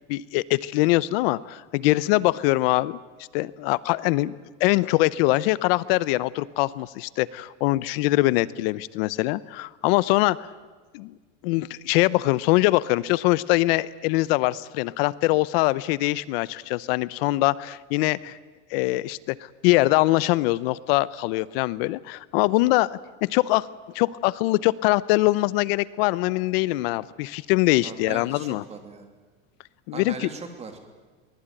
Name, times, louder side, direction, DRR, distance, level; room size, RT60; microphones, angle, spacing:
voice 1, 0.1-3.0 3.3-10.4 10.9-11.1 11.4-18.4 18.7-19.4 19.6-22.9 23.2-23.7 23.9-28.6 29.9-30.3, left 19 dB, 55° left, 19 dB, 0.8 m, -23 dB
voice 2, 27.8-29.1 29.9-30.8, right 4 dB, 20° right, 6 dB, 2.9 m, -39 dB
23.0 x 20.0 x 9.1 m, 1.4 s
supercardioid pair, 155°, 35 cm